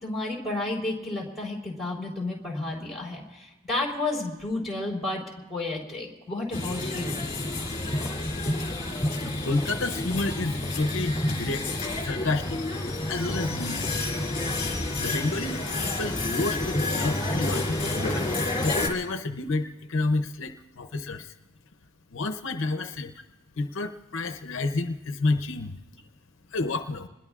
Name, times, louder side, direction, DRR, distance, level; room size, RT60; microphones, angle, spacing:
voice 1, 0.0-7.3, left 2 dB, ahead, -3 dB, 3.8 m, -32 dB
sound 1, 6.5-18.9, left 2 dB, 30° left, 2.7 m, -29 dB
voice 2, 9.2-11.7 12.0-12.6 13.1-13.9 15.0-18.3 18.6-21.3 22.1-23.1 23.6-25.8 26.5-27.1, left 2 dB, 65° left, 6 dB, 0.7 m, -30 dB
27.0 x 20.5 x 2.4 m, 1.1 s
head